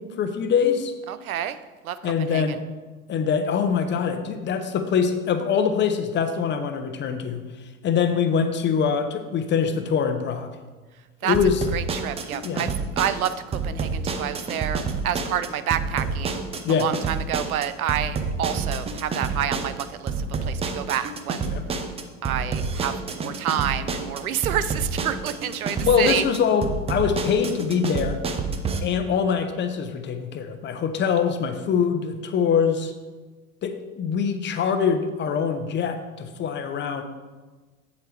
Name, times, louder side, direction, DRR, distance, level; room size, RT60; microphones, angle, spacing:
voice 1, 0.2-0.9 2.0-2.6 3.1-7.4 7.8-10.5 11.2-11.6 12.4-12.6 16.6-16.9 21.5-21.6 25.8-28.2 28.8-32.9 33.6-37.0, left 6 dB, 25° left, 8 dB, 0.9 m, -23 dB
voice 2, 1.1-1.6 1.8-2.6 11.2-11.4 11.7-21.5 22.2-26.2, right 10 dB, 70° right, 13 dB, 0.7 m, -29 dB
sound 1, 11.3-28.8, right 4 dB, 15° right, 0.5 m, -29 dB
8.1 x 7.7 x 3.4 m, 1.3 s
figure-of-eight pair, 85°, 44 cm